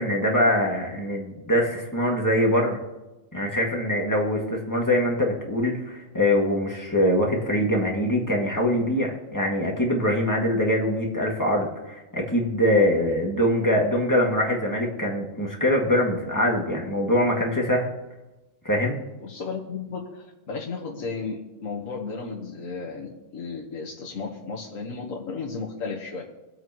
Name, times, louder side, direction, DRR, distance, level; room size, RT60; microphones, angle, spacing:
voice 1, 0.0-2.8 3.3-17.9 18.6-19.0, left 1 dB, 15° left, -2 dB, 2.1 m, -23 dB
voice 2, 19.2-26.2, left 4 dB, 80° left, -2 dB, 1.7 m, -34 dB
23.5 x 8.0 x 3.1 m, 1.1 s
omnidirectional pair, 1.4 m